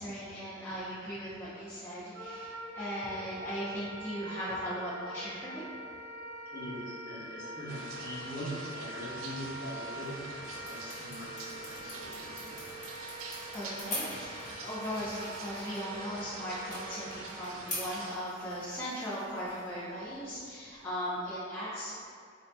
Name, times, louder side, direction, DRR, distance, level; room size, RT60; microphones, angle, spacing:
voice 1, 0.0-5.6 12.0-12.1 12.4-12.6 13.0-22.0, equal, 10° left, -12 dB, 0.6 m, -38 dB
Wind instrument woodwind instrument, 2.1-17.2, equal, 55° right, 0.8 m, -44 dB
voice 2, 6.5-12.7, equal, 50° left, -9 dB, 1.0 m, -42 dB
sound 1, 7.7-18.2, right 3 dB, 80° right, 0.4 m, -46 dB
sound 2, 9.8-21.4, left 1 dB, 35° left, 1.4 m, -46 dB
4.6 x 2.6 x 2.2 m, 2.2 s
head